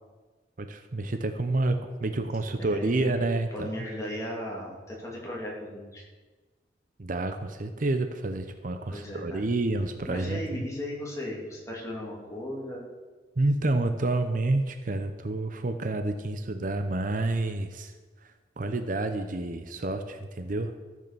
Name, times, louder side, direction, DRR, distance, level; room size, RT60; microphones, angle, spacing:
voice 1, 0.6-3.9 7.0-10.6 13.4-17.9 18.2-20.7, right 2 dB, 50° right, 8 dB, 0.7 m, -29 dB
voice 2, 2.6-3.2 3.5-6.0 8.9-9.4 10.1-12.8, left 1 dB, 15° left, -3 dB, 3.0 m, -36 dB
13.5 x 6.6 x 6.8 m, 1.3 s
head